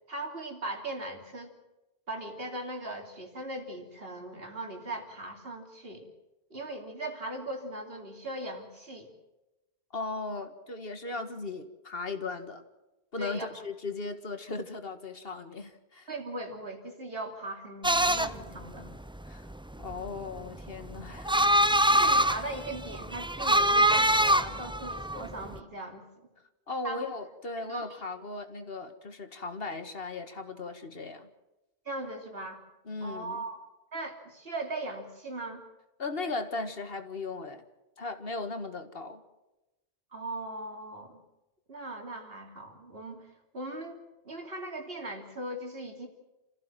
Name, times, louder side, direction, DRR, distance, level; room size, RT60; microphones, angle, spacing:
voice 1, 0.1-1.6 2.1-6.1 6.5-9.1 13.2-13.6 16.1-19.0 21.9-26.3 26.8-27.1 27.6-28.0 31.9-32.6 33.0-33.6 33.9-35.6 40.1-41.2 41.7-46.1, right 2 dB, 70° right, 3 dB, 3.4 m, -39 dB
voice 2, 9.9-12.6 13.1-16.1 19.3-19.5 19.8-21.3 26.7-31.3 32.9-33.4 36.0-37.6 38.0-39.2, left 3 dB, 70° left, 8 dB, 1.9 m, -37 dB
sound 1, 17.8-25.6, right 1 dB, 5° right, 0.5 m, -25 dB
28.0 x 15.0 x 7.5 m, 1.0 s
omnidirectional pair, 1.0 m